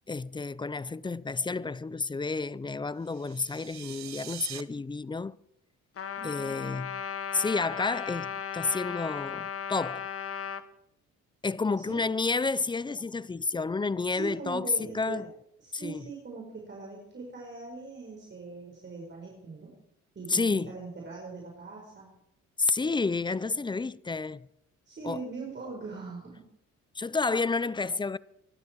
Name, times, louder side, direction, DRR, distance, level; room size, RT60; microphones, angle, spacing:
voice 1, 0.1-5.4 6.2-6.9 7.3-10.1 11.4-15.3 15.7-16.1 20.3-20.7 22.6-24.5 25.0-25.2 26.9-28.2, left 4 dB, 15° left, 0.5 m, -30 dB
sound 1, 3.0-4.6, right 12 dB, 65° right, 0.9 m, -43 dB
Trumpet, 6.0-10.6, left 7 dB, 50° left, 1.3 m, -36 dB
voice 2, 6.2-6.7 11.8-12.0 14.1-15.2 15.6-19.7 20.2-22.1 24.9-26.4, right 4 dB, 35° right, 5.4 m, -41 dB
25.0 x 12.0 x 4.7 m
cardioid pair, 90°, 30 cm